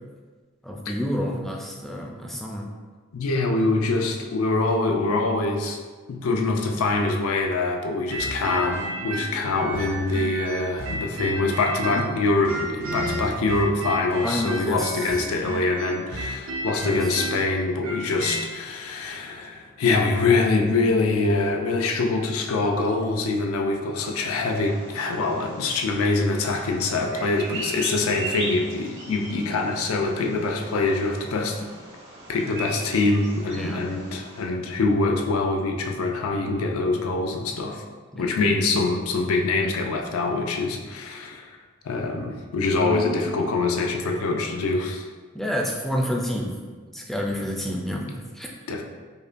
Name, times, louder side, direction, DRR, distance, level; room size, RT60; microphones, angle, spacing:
voice 1, 0.6-2.7 14.2-15.1 16.9-17.0 33.5-33.8 38.1-38.5 42.8-43.2 45.3-46.5 46.9-48.5, equal, ahead, -1 dB, 0.3 m, -29 dB
voice 2, 3.1-5.8 6.1-31.7 32.3-37.8 38.2-41.5 41.8-45.1 48.7-48.8, left 3 dB, 90° left, 3 dB, 0.4 m, -24 dB
sound 1, 8.1-12.1 12.4-18.4, right 1 dB, 80° right, 0.5 m, -32 dB
Bird vocalization bird call bird song, 24.0-34.4, right 2 dB, 55° right, 0.9 m, -38 dB
5.2 x 2.2 x 2.5 m, 1.5 s
head